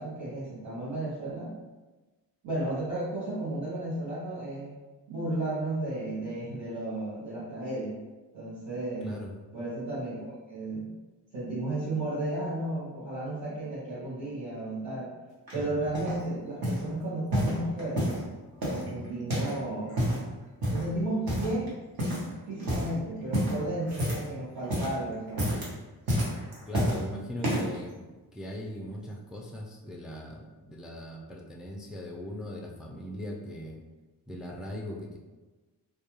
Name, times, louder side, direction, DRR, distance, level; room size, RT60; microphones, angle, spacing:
voice 1, 0.0-1.6 2.4-4.7 5.1-8.0 8.3-9.1 9.5-10.9 11.3-15.1 15.5-18.1 18.6-20.0 20.7-21.7 22.5-25.6, right 2 dB, 80° right, -10 dB, 0.9 m, -33 dB
voice 2, 9.0-9.3 15.5-15.6 18.7-19.1 26.6-33.8 34.3-35.2, equal, ahead, 0 dB, 0.3 m, -39 dB
sound 1, 15.5-16.2 16.6-16.9 17.3-18.2 18.6-19.6 19.9-20.3 20.6-20.9 21.3-21.7 22.0-22.3 22.6-22.9 23.3-24.3 24.6-25.0 25.3-25.7 26.1-27.0 27.4-27.8 28.4-28.5, equal, 55° right, 1.0 m, -29 dB
2.3 x 2.2 x 2.9 m, 1.2 s
cardioid pair, 55°, 44 cm